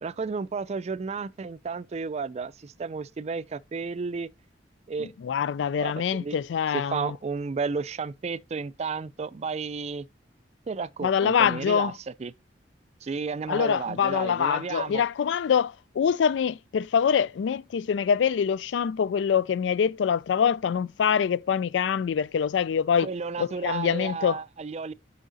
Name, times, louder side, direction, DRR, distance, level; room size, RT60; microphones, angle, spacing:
voice 1, 0.0-4.3 4.9-5.1 5.8-6.4 6.7-10.1 10.7-11.9 12.2-12.3 13.0-15.0 23.0-24.9, right 4 dB, 40° right, 0.4 m, -32 dB
voice 2, 5.0-7.2 11.0-11.9 13.5-23.1 23.4-24.4, left 7 dB, 85° left, 0.3 m, -25 dB
6.3 x 5.8 x 3.9 m
head